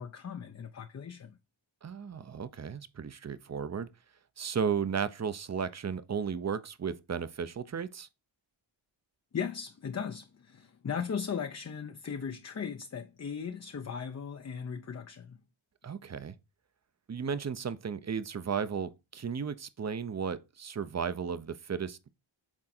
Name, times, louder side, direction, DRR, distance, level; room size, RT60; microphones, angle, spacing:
voice 1, 0.0-1.4 9.3-15.4, left 7 dB, 35° left, 0.5 m, -37 dB
voice 2, 1.8-3.9 4.4-8.1 15.8-16.4 17.1-22.1, right 6 dB, 35° right, 0.6 m, -34 dB
6.1 x 3.8 x 4.3 m
cardioid pair, 55°, 48 cm